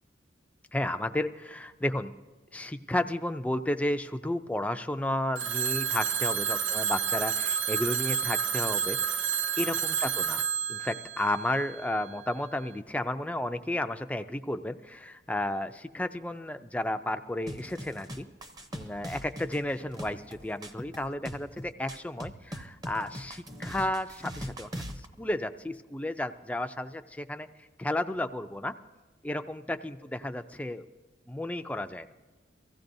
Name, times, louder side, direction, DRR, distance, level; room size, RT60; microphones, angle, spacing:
voice 1, 0.7-2.1 2.5-9.0 9.6-10.4 10.7-18.3 18.7-24.7 25.0-28.7 29.2-30.9 31.3-32.1, left 1 dB, 5° left, 8 dB, 0.3 m, -32 dB
Telephone, 5.4-12.2, right 7 dB, 85° right, 0.4 m, -30 dB
sound 1, 17.5-25.1, equal, 20° right, 0.7 m, -41 dB
23.5 x 15.5 x 2.6 m, 1.2 s
head